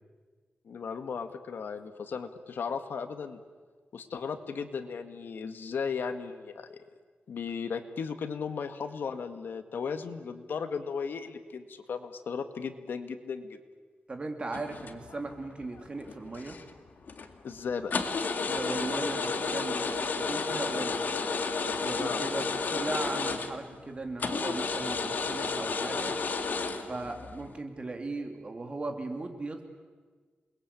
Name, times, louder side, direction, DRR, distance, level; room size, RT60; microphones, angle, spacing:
voice 1, 0.6-3.4 3.9-6.8 7.3-13.6 17.4-18.0 22.0-22.2, left 6 dB, 80° left, 8 dB, 1.9 m, -36 dB
voice 2, 14.1-16.6 18.5-21.0 21.6-26.1 26.9-29.6, right 2 dB, 35° right, 4 dB, 3.1 m, -37 dB
sound 1, 14.5-15.3 15.7-16.7 17.1-17.3 17.9-23.7 24.2-27.5, left 4 dB, 60° left, 2.1 m, -32 dB
28.5 x 21.5 x 8.6 m, 1.5 s
wide cardioid pair, 130°, 3 cm